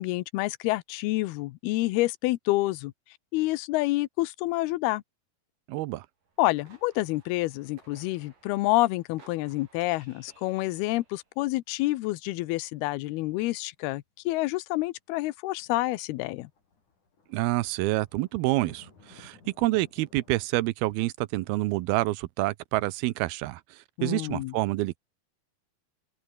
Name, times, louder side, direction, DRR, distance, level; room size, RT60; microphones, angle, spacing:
voice 1, 0.0-2.9 3.3-5.0 6.4-16.5 24.0-24.5, left 19 dB, 85° left, 2.8 m, -28 dB
voice 2, 5.7-6.1 17.3-23.6 24.0-25.0, right 18 dB, 80° right, 2.6 m, -28 dB
sound 1, 6.2-11.3, right 4 dB, 60° right, 7.8 m, -59 dB
sound 2, 6.7-7.1 7.4-7.8 8.2-8.4 10.0-10.1 10.4-10.8 12.8-12.9 13.2-13.3 13.6-13.7 13.9-14.0 15.5-20.5, left 4 dB, 50° left, 7.3 m, -57 dB
omnidirectional pair, 4.4 m